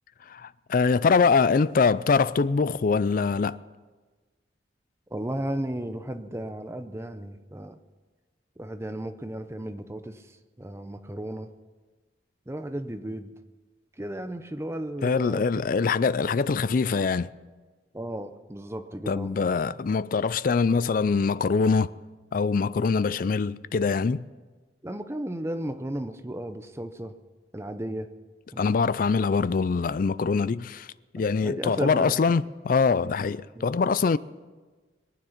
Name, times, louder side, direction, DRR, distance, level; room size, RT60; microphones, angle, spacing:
voice 1, 0.3-3.6 15.0-17.3 19.1-21.9 22.3-24.3 28.6-30.9 31.1-34.2, left 5 dB, 50° left, 0.4 m, -23 dB
voice 2, 5.1-7.8 8.6-11.5 12.5-13.3 14.0-15.6 16.2-16.4 17.9-19.3 24.8-27.1 27.5-28.1 28.5-28.6 31.1-32.2 33.6-33.7, right 1 dB, 15° right, 0.6 m, -34 dB
22.5 x 9.4 x 5.8 m
head